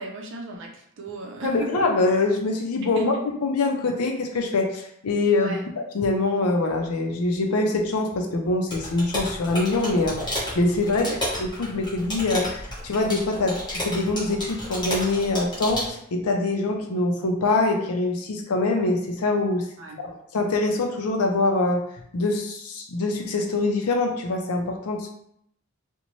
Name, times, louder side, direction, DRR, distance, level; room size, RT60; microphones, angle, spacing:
voice 1, 0.0-1.7 2.8-3.2 5.4-5.7 11.0-11.2 19.8-20.0, right 2 dB, 55° right, 1 dB, 0.5 m, -36 dB
voice 2, 1.4-3.1 3.4-5.6 5.9-11.1 11.4-19.6 20.0-21.8 22.1-25.1, left 2 dB, 85° left, 3 dB, 0.5 m, -24 dB
sound 1, 8.7-15.9, left 1 dB, 20° left, 0.9 m, -32 dB
2.6 x 2.1 x 3.0 m, 0.72 s
head